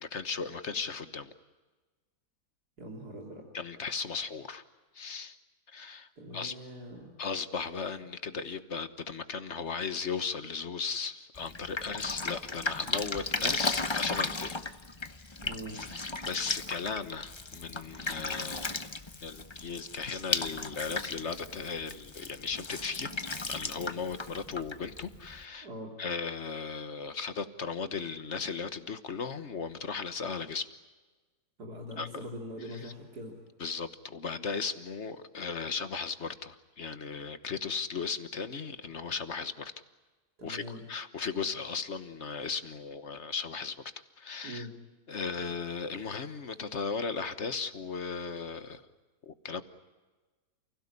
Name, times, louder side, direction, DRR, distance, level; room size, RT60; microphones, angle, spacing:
voice 1, 0.0-1.3 3.5-4.6 4.9-5.4 5.7-6.1 6.3-6.5 7.2-14.6 15.8-18.9 19.2-23.1 23.5-25.7 26.0-30.7 32.0-32.2 32.7-32.9 33.6-39.7 40.4-43.8 44.2-44.7 45.1-48.8 49.3-49.6, left 5 dB, 50° left, 11 dB, 1.4 m, -36 dB
voice 2, 2.8-3.4 6.2-7.1 15.4-15.8 25.6-25.9 31.6-33.4 40.4-40.8 44.4-44.7, equal, 80° right, 0 dB, 3.8 m, -42 dB
Drip, 11.4-25.4, left 3 dB, 20° left, 0.8 m, -36 dB
29.5 x 17.0 x 9.8 m, 1.3 s
omnidirectional pair, 1.7 m